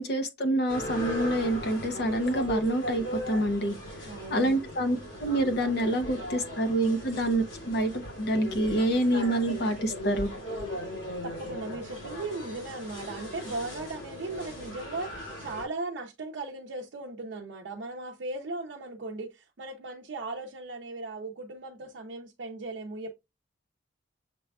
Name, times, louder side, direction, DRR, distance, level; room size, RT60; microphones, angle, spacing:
voice 1, 0.0-3.7 4.3-7.9 8.2-10.3, right 1 dB, 55° left, 0.6 m, -27 dB
sound 1, 0.7-15.7, equal, 90° left, 2.2 m, -38 dB
voice 2, 4.1-4.6 11.2-23.1, right 2 dB, 70° right, 0.5 m, -37 dB
6.6 x 2.3 x 2.3 m
head